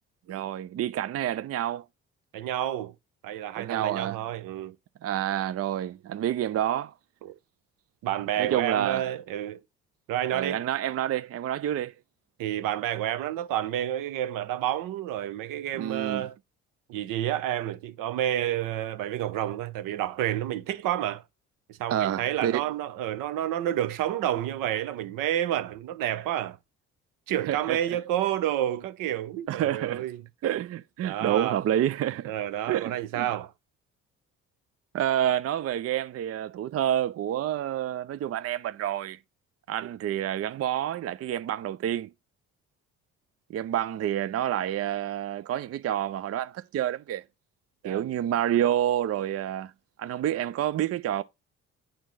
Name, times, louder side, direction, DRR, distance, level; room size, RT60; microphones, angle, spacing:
voice 1, 0.3-1.9 3.6-4.2 5.0-6.9 8.4-9.1 10.3-11.9 15.8-16.3 21.9-22.6 27.4-27.8 29.5-30.0 30.4-32.3 32.7-33.3 34.9-39.2 39.7-42.1 43.5-47.2 47.8-49.7 50.0-51.2, right 11 dB, 45° right, 0.5 m, -28 dB
voice 2, 2.3-2.9 3.2-4.8 7.2-7.3 8.0-9.6 10.1-10.6 12.4-16.4 16.9-21.2 21.7-26.6 27.3-30.2 31.0-31.6 32.2-33.5 39.8-39.9 47.8-48.0, right 12 dB, 70° right, 0.9 m, -30 dB
9.0 x 4.5 x 4.0 m
hypercardioid pair, 50°, 34 cm